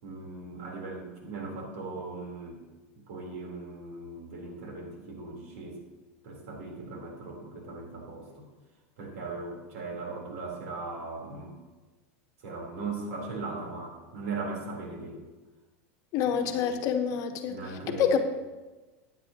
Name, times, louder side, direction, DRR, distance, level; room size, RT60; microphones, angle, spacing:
voice 1, 0.0-2.6 3.1-5.8 6.2-8.4 9.0-11.6 12.4-15.3 16.5-16.8 17.5-18.2, right 3 dB, 75° right, -1 dB, 3.8 m, -38 dB
voice 2, 16.1-17.6 18.0-18.2, left 7 dB, 50° left, 6 dB, 1.2 m, -27 dB
15.5 x 9.2 x 3.0 m, 1.2 s
supercardioid pair, 115°, 7 cm